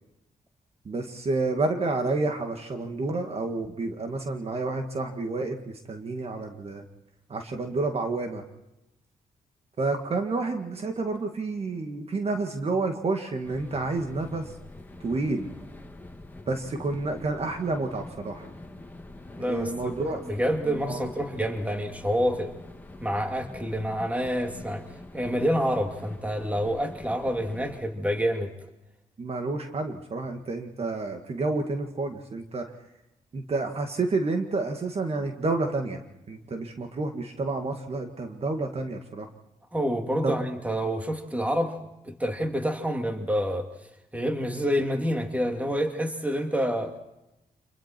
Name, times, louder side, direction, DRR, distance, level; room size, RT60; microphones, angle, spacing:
voice 1, 0.8-6.8 7.3-8.4 9.8-14.5 15.0-15.6 16.5-18.5 19.4-20.2 20.7-21.1 29.2-32.7 33.3-39.3 40.2-40.4, right 3 dB, 45° right, 5 dB, 1.8 m, -29 dB
sound 1, 13.4-27.8, left 2 dB, 10° left, 2.1 m, -45 dB
voice 2, 19.4-22.5 23.0-24.8 25.1-28.5 39.7-41.7 42.0-43.7 44.1-47.0, equal, 10° right, 5 dB, 2.5 m, -28 dB
27.0 x 22.0 x 4.5 m, 0.94 s
cardioid pair, 90°, 15 cm